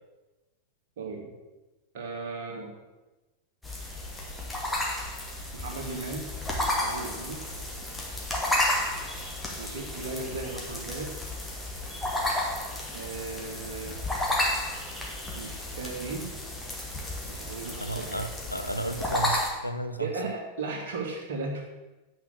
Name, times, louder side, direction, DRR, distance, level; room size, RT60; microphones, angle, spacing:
voice 1, 1.0-1.3 1.9-2.7 5.5-6.3 6.8-7.4 9.6-11.1 12.9-14.0 15.4-16.3 17.2-18.1 20.0-21.7, right 3 dB, 55° right, 0 dB, 2.6 m, -36 dB
sound 1, 3.6-19.5, left 1 dB, 5° left, 2.6 m, -32 dB
voice 2, 17.8-20.1, right 1 dB, 90° left, 8 dB, 0.7 m, -33 dB
8.9 x 6.0 x 7.9 m, 1.1 s
figure-of-eight pair, 90°, 0 cm